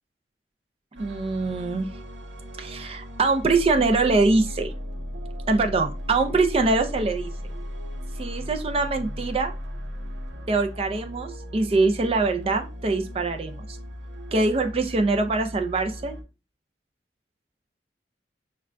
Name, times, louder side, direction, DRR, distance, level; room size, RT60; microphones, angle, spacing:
voice 1, 0.9-1.9 2.6-4.7 5.5-7.3 8.2-9.5 10.5-13.7 14.3-16.2, right 3 dB, 35° right, 6 dB, 0.4 m, -23 dB
sound 1, 1.0-16.2, equal, 90° right, 0.7 m, -36 dB
6.2 x 2.2 x 2.4 m, 0.31 s
head